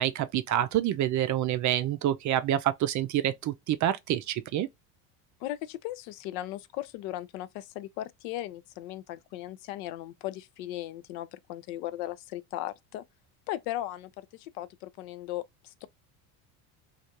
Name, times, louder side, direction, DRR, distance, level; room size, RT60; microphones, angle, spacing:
voice 1, 0.0-4.7, right 12 dB, 40° right, 0.5 m, -27 dB
voice 2, 5.4-13.0 13.5-15.9, left 14 dB, 70° left, 0.6 m, -37 dB
3.3 x 2.4 x 2.7 m
supercardioid pair, 85°, 48 cm